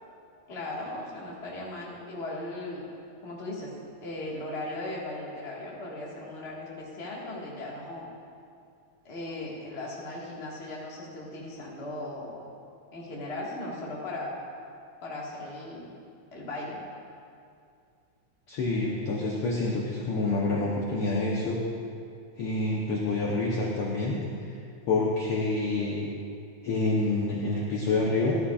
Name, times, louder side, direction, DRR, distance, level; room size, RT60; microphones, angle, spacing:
voice 1, 0.5-2.8 3.2-3.7 4.0-8.1 9.0-12.5 12.9-14.3 15.0-16.0 16.3-16.8, left 2 dB, 30° left, -5 dB, 1.4 m, -37 dB
voice 2, 18.5-21.6 22.4-24.2 24.5-24.6 24.9-26.1 26.6-28.4, left 2 dB, 65° left, -4 dB, 1.5 m, -27 dB
13.0 x 12.5 x 2.4 m, 2.4 s
omnidirectional pair, 3.4 m